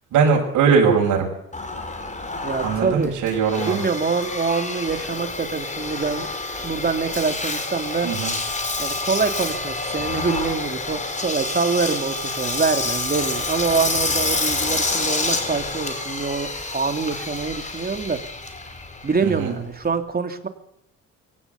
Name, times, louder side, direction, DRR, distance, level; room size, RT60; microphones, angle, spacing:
voice 1, 0.1-1.3 2.6-3.8 8.0-8.3 19.2-19.5, right 6 dB, 80° right, 1 dB, 6.7 m, -20 dB
Engine, 1.5-20.0, left 3 dB, 25° left, 4.8 m, -28 dB
voice 2, 2.4-3.2 3.6-6.3 6.6-8.1 8.8-18.2 19.0-20.5, right 4 dB, 30° right, 7 dB, 3.0 m, -25 dB
23.0 x 17.0 x 8.4 m, 0.78 s
cardioid pair, 90°, 30 cm